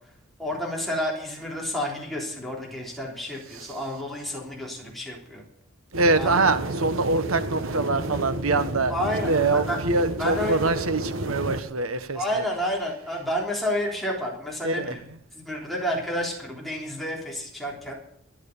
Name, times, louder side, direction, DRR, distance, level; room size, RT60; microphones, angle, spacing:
voice 1, 0.4-5.4 6.1-6.5 8.9-9.8 10.2-10.6 12.1-15.0 15.4-17.9, equal, ahead, -3 dB, 3.5 m, -30 dB
sound 1, 5.9-11.6, right 1 dB, 70° right, 1.4 m, -31 dB
voice 2, 6.0-8.9 9.3-12.4 14.6-15.0, right 3 dB, 90° right, 10 dB, 1.3 m, -24 dB
13.5 x 11.0 x 6.8 m, 0.72 s
head